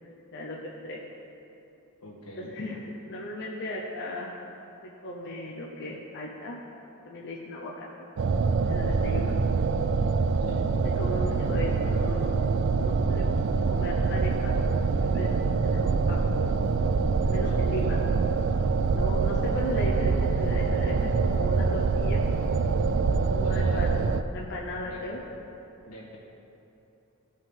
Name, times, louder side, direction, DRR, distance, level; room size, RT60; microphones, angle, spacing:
voice 1, 0.0-0.6 0.8-1.1 2.4-4.3 5.0-6.6 7.0-7.9 8.7-9.3 11.0-13.3 13.7-14.7 15.0-15.3 15.6-16.2 17.2-18.0 18.9-22.2 23.3-25.2, left 1 dB, 50° left, -3 dB, 0.7 m, -36 dB
voice 2, 2.0-2.6 9.1-9.5 10.4-10.7 17.4-18.0 23.4-24.0 24.8-25.0 25.8-26.2, left 1 dB, 90° left, -4 dB, 1.8 m, -46 dB
sound 1, 8.2-24.2, right 4 dB, 55° right, 0.3 m, -25 dB
15.0 x 5.3 x 3.7 m, 3.0 s
head